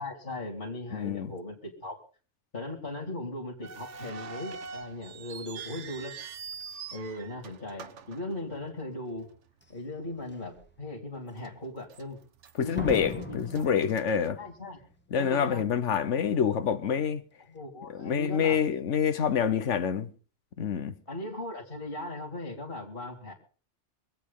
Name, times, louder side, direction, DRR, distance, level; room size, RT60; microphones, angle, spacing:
voice 1, 0.0-2.0 2.5-6.1 6.9-9.3 9.7-12.2 12.6-13.6 14.4-14.8 15.2-15.6 17.5-18.6 21.1-23.3, left 1 dB, 50° left, 3.0 m, -38 dB
voice 2, 0.9-1.3 12.6-14.4 15.1-17.2 18.0-20.1 20.6-20.9, left 7 dB, 90° left, 1.3 m, -27 dB
Epic Metal Gate, 3.6-8.9 9.2-9.3 10.1-10.3 10.7-10.8 11.4-12.0 12.4-14.9, right 5 dB, 85° right, 1.3 m, -44 dB
Slam, 9.6-9.7 10.3-10.7 12.8-14.7 14.9-15.0, left 1 dB, 10° left, 1.0 m, -40 dB
24.5 x 8.5 x 5.5 m
omnidirectional pair, 1.2 m